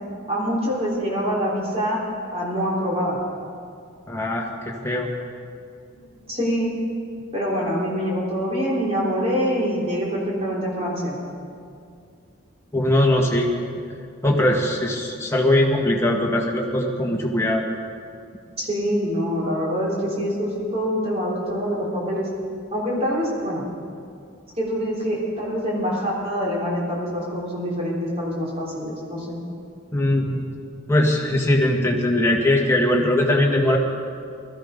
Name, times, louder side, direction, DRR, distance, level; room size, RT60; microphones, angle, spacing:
voice 1, 0.3-2.0 2.3-3.2 6.3-6.7 7.3-11.2 18.6-22.3 22.7-23.6 24.5-29.4, equal, 30° right, -4 dB, 3.8 m, -25 dB
voice 2, 4.1-4.5 4.8-5.1 12.7-13.5 14.2-17.6 29.9-30.4 30.9-33.8, left 1 dB, 10° left, -1 dB, 1.7 m, -20 dB
18.5 x 14.0 x 5.3 m, 2.3 s
head